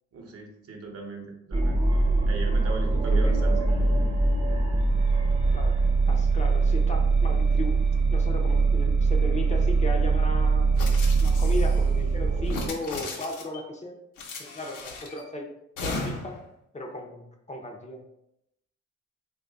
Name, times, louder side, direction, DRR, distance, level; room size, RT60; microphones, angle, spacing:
voice 1, 0.1-1.8 2.3-3.7, right 3 dB, 50° right, 2 dB, 0.8 m, -38 dB
sound 1, 1.5-12.7, right 3 dB, 20° right, 0.6 m, -22 dB
voice 2, 3.1-3.5 5.5-5.8 6.1-7.8 8.1-10.7 11.2-14.0 14.4-15.5 15.8-16.4 16.7-18.0, left 2 dB, 25° left, 1 dB, 0.5 m, -36 dB
sound 2, 10.8-11.8 12.4-13.6 14.2-15.2 15.8-16.4, left 3 dB, 85° left, 0.8 m, -36 dB
3.1 x 2.3 x 3.8 m, 0.81 s
cardioid pair, 90°, 30 cm